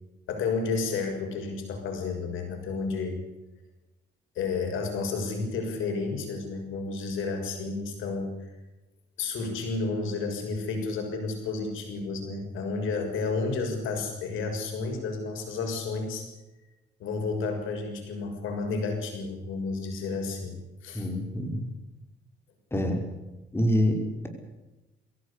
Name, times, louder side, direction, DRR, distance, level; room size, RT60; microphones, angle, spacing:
voice 1, 0.3-3.2 4.3-8.5 9.2-16.3 17.0-20.6 20.8-21.1, left 4 dB, 85° left, 4 dB, 6.5 m, -31 dB
voice 2, 20.9-21.6 22.7-23.0 23.5-24.0, equal, 10° left, 4 dB, 5.5 m, -25 dB
22.5 x 17.0 x 8.6 m, 1.0 s
cardioid pair, 90°, 20 cm